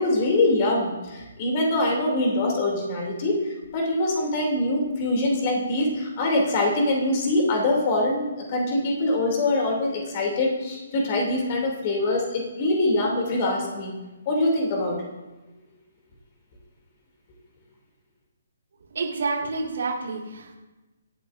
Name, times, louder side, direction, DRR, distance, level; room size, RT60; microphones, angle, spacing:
voice 1, 0.0-13.9 14.3-15.0, left 2 dB, 35° left, 0 dB, 2.8 m, -24 dB
voice 2, 18.9-20.6, right 3 dB, 60° right, 0 dB, 2.2 m, -29 dB
25.0 x 8.4 x 2.6 m, 1.1 s
figure-of-eight pair, 135°, 0 cm